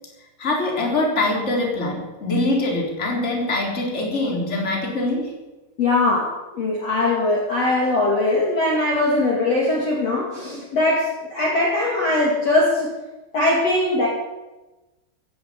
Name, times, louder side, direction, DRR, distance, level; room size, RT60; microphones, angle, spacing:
voice 1, 0.4-5.3, left 2 dB, 15° left, 0 dB, 3.3 m, -23 dB
voice 2, 5.8-12.9 13.3-14.1, left 2 dB, 40° left, -3 dB, 3.1 m, -21 dB
15.5 x 10.0 x 8.5 m, 1.1 s
omnidirectional pair, 5.1 m